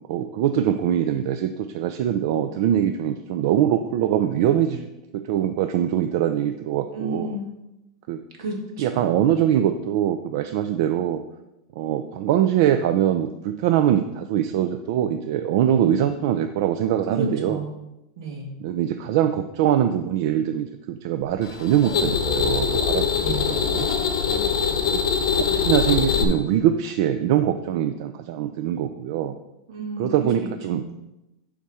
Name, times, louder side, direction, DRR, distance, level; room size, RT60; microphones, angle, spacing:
voice 1, 0.1-4.9 5.1-7.4 8.1-8.2 8.8-11.2 11.8-17.6 18.6-23.9 24.3-24.4 24.9-25.0 25.4-29.4 30.0-30.8, right 10 dB, 55° right, 8 dB, 0.4 m, -23 dB
voice 2, 6.9-7.6 8.4-9.2 17.1-17.7 18.2-18.5 23.1-23.6 29.7-30.9, right 2 dB, 75° right, 1 dB, 2.0 m, -31 dB
sound 1, 21.4-26.2, left 7 dB, 70° left, 0.8 m, -23 dB
7.0 x 3.6 x 6.2 m, 0.92 s
supercardioid pair, 170°, 3 cm